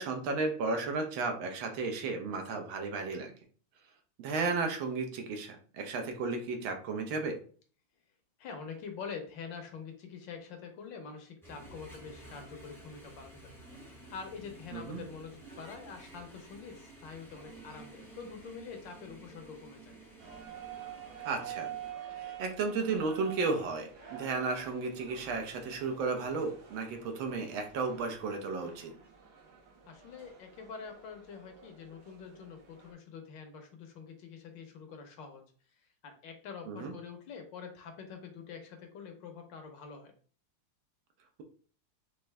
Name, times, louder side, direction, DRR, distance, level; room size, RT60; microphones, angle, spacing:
voice 1, 0.0-3.3 4.2-7.4 14.7-15.0 21.2-21.7 22.1-28.9 36.7-36.9, right 4 dB, 75° right, 4 dB, 1.6 m, -34 dB
voice 2, 8.4-20.0 29.9-35.4 35.7-40.1, left 6 dB, 70° left, 5 dB, 1.4 m, -46 dB
sound 1, 11.4-21.9, right 2 dB, 5° left, 0.5 m, -52 dB
sound 2, 20.2-32.9, right 9 dB, 60° right, 1.4 m, -48 dB
5.4 x 2.6 x 3.3 m, 0.43 s
omnidirectional pair, 2.3 m